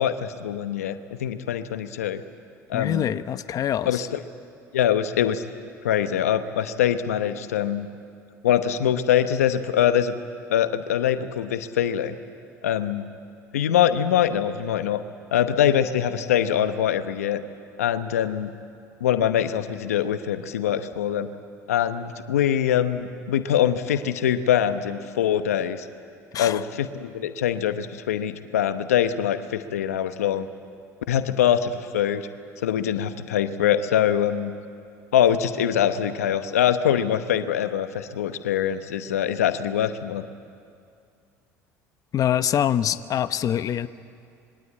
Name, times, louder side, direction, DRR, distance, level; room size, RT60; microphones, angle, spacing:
voice 1, 0.0-2.2 2.7-3.1 3.9-4.2 4.7-5.4 5.8-7.9 8.4-10.1 10.5-12.2 12.6-13.0 13.5-15.0 15.3-17.4 17.8-18.5 19.0-21.3 21.7-25.9 26.4-30.5 31.1-32.3 32.6-34.5 35.1-40.2, left 10 dB, 90° left, 11 dB, 1.0 m, -23 dB
voice 2, 2.7-4.0 26.3-26.6 42.1-43.9, left 10 dB, 50° left, 13 dB, 0.9 m, -24 dB
26.0 x 22.5 x 8.7 m, 2.4 s
hypercardioid pair, 70°, 8 cm